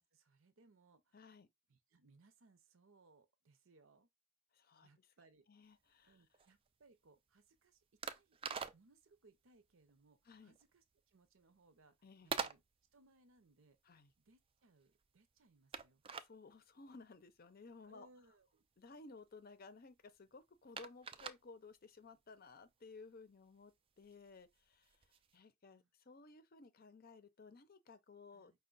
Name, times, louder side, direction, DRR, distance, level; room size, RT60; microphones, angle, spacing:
voice 1, 0.0-1.2 1.7-4.1 4.8-5.5 6.0-8.4 8.7-12.0 12.2-12.6 12.9-13.8 14.2-16.0 17.8-18.6 25.7-25.9 28.3-28.6, right 3 dB, 70° right, 0.7 m, -69 dB
voice 2, 1.1-1.5 4.5-5.1 5.5-6.2 10.3-10.6 12.0-12.3 13.8-14.1 16.2-18.1 18.8-28.6, left 3 dB, 45° left, 0.6 m, -57 dB
sound 1, 5.6-25.4, right 6 dB, 25° right, 0.3 m, -50 dB
5.3 x 2.2 x 3.9 m
head